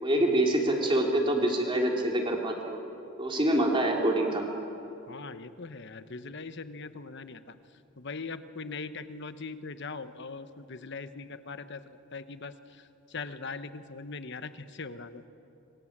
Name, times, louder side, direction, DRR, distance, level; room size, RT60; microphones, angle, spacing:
voice 1, 0.0-2.8 3.2-4.4, right 1 dB, 25° right, 0 dB, 3.3 m, -26 dB
voice 2, 5.1-7.4 8.0-11.8 12.1-12.5 13.1-14.5 14.8-15.2, left 4 dB, 55° left, 11 dB, 1.1 m, -40 dB
26.5 x 24.0 x 7.5 m, 2.8 s
head